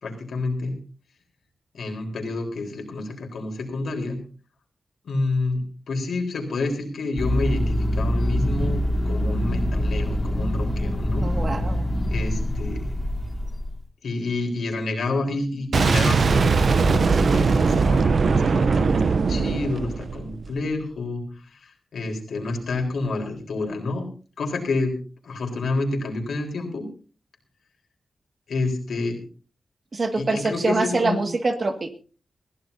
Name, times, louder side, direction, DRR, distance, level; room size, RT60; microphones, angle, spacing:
voice 1, 0.0-0.8 1.7-4.2 5.0-8.8 9.1-11.3 12.1-12.8 14.0-21.2 21.5-24.0 24.4-25.0 25.2-26.9 28.5-29.2 30.2-31.2, left 3 dB, 85° left, 2 dB, 4.0 m, -29 dB
sound 1, 7.2-13.8, equal, 15° left, 3.4 m, -25 dB
voice 2, 11.2-11.9 29.9-31.9, right 3 dB, 50° right, 7 dB, 2.0 m, -24 dB
Boom, 15.7-20.6, right 4 dB, 65° right, 0.7 m, -20 dB
22.0 x 15.0 x 2.8 m, 0.37 s
cardioid pair, 80°, 0 cm